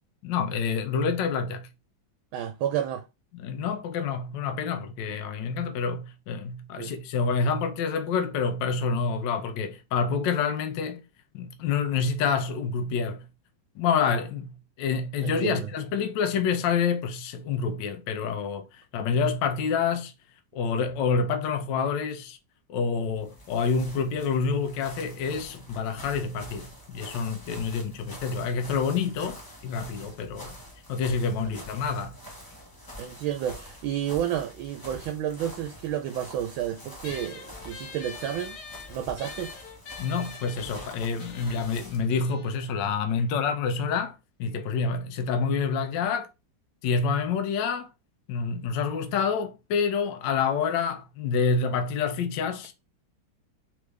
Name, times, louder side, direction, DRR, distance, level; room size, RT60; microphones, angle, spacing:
voice 1, 0.2-1.7 3.3-11.0 11.3-13.2 13.8-20.1 20.5-22.4 22.7-29.4 29.6-30.6 30.9-32.2 40.0-46.3 46.8-47.9 48.3-52.7, left 5 dB, 70° left, 1.2 m, -27 dB
voice 2, 2.3-3.0 6.8-6.9 15.2-15.7 31.5-31.6 33.0-38.6 38.9-39.5, right 10 dB, 80° right, 1.3 m, -31 dB
sound 1, 23.0-42.1, equal, 15° left, 0.8 m, -46 dB
sound 2, 37.0-43.8, left 5 dB, 85° left, 1.7 m, -45 dB
3.7 x 3.3 x 3.2 m
omnidirectional pair, 2.2 m